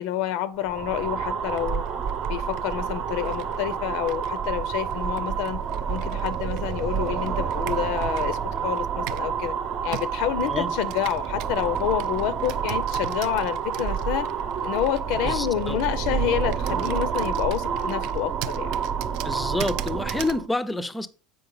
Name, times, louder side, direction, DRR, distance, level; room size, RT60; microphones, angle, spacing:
voice 1, 0.0-1.8 2.3-5.6 5.9-9.5 9.8-14.3 14.6-18.8, left 11 dB, 70° left, 0.6 m, -28 dB
sound 1, 0.6-20.4, right 7 dB, 45° right, 0.8 m, -28 dB
Computer keyboard, 1.5-9.4 9.9-20.4, right 13 dB, 65° right, 0.4 m, -41 dB
voice 2, 15.2-15.8 19.0-21.1, left 2 dB, 10° left, 0.5 m, -28 dB
7.7 x 5.0 x 3.9 m
supercardioid pair, 135°, 0 cm